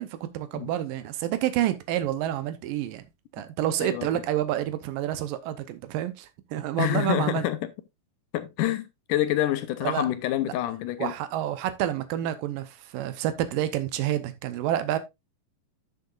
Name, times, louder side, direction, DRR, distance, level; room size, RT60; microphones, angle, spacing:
voice 1, 0.0-3.0 3.3-7.4 9.8-10.1 11.0-15.0, right 12 dB, 90° right, 2.6 m, -28 dB
voice 2, 6.8-7.6 8.3-11.1, left 13 dB, 80° left, 2.3 m, -27 dB
12.0 x 6.8 x 2.5 m
omnidirectional pair, 3.9 m